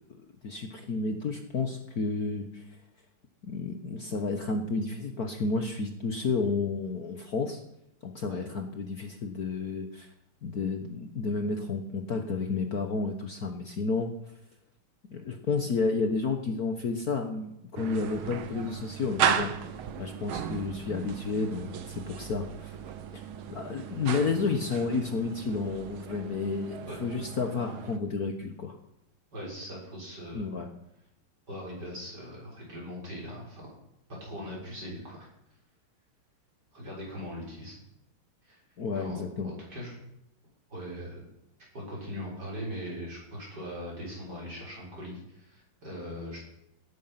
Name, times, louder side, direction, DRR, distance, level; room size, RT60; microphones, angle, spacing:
voice 1, 0.4-2.6 3.4-7.6 8.0-10.1 10.4-14.1 15.1-19.5 20.0-22.8 23.1-28.8 30.3-30.7 38.8-39.5, left 4 dB, 50° left, 6 dB, 1.5 m, -31 dB
sound 1, 17.8-28.0, right 8 dB, 70° right, 1.9 m, -35 dB
voice 2, 29.3-30.4 31.5-33.7 34.2-35.3 36.7-37.8 38.4-38.6 38.9-39.9 40.7-41.2 41.7-46.4, equal, 50° right, -3 dB, 7.2 m, -40 dB
18.0 x 13.0 x 5.8 m, 0.80 s
omnidirectional pair, 2.4 m